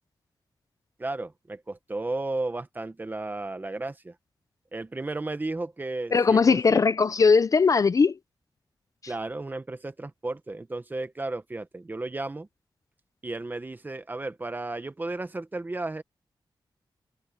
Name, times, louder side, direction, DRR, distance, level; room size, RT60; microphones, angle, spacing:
voice 1, 1.0-4.1 4.7-6.8 9.1-12.5 13.2-16.0, right 2 dB, 20° right, 1.1 m, -34 dB
voice 2, 6.1-8.1, left 5 dB, 40° left, 0.5 m, -19 dB
wide cardioid pair, 155°, 9 cm